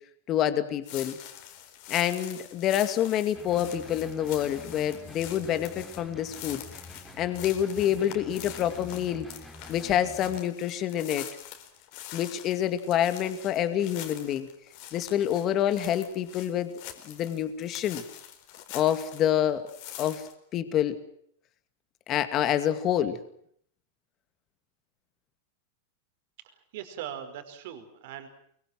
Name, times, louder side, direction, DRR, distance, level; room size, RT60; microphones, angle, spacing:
voice 1, 0.3-1.2 1.9-6.6 7.2-9.3 9.7-11.3 12.1-14.5 14.9-16.7 17.0-18.0 18.7-19.7 20.0-20.3 20.5-21.0 22.1-23.2, left 10 dB, 30° left, 10 dB, 2.3 m, -27 dB
sound 1, 0.8-19.3 19.7-20.3, left 11 dB, 50° left, 4.4 m, -44 dB
sound 2, 3.3-10.4, left 2 dB, ahead, 4.6 m, -47 dB
voice 2, 26.4-28.3, right 10 dB, 60° right, 8 dB, 5.0 m, -40 dB
24.5 x 23.0 x 7.6 m, 0.67 s
supercardioid pair, 145°, 0 cm